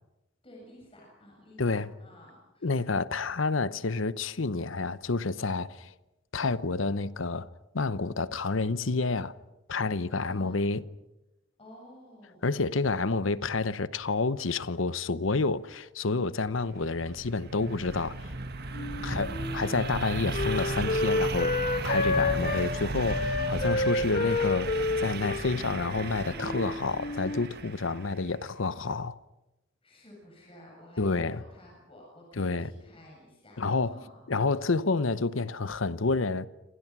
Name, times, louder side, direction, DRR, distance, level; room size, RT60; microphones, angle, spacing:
voice 1, 0.4-2.7 10.2-10.6 11.6-12.5 23.3-24.0 29.8-34.2, equal, 30° left, 7.7 m, -53 dB
voice 2, 1.6-1.9 2.6-5.9 6.3-7.5 7.7-9.3 9.7-10.8 12.4-18.3 19.0-21.6 21.8-29.2 31.0-31.4 32.4-32.7 33.6-34.0 34.3-36.5, left 3 dB, 85° left, 0.9 m, -29 dB
sound 1, 16.6-28.3, right 3 dB, 55° right, 1.8 m, -35 dB
Wind instrument woodwind instrument, 18.7-22.7 23.1-27.5, left 3 dB, 50° left, 2.0 m, -30 dB
29.5 x 27.0 x 6.1 m
head